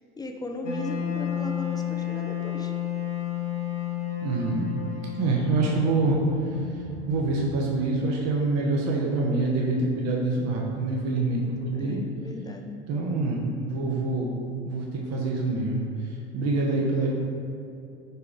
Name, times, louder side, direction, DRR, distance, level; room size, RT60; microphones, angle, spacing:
voice 1, 0.2-2.7 11.7-12.8, left 1 dB, 10° left, 4 dB, 0.5 m, -37 dB
Wind instrument woodwind instrument, 0.6-7.6, left 9 dB, 85° left, 1.2 m, -32 dB
voice 2, 4.2-4.7 5.2-6.2 6.5-6.6 7.1-12.0 12.9-14.3 14.7-15.8 16.3-17.1, right 3 dB, 45° right, -2 dB, 1.0 m, -26 dB
4.8 x 4.6 x 5.1 m, 2.6 s
hypercardioid pair, 75°, 35 cm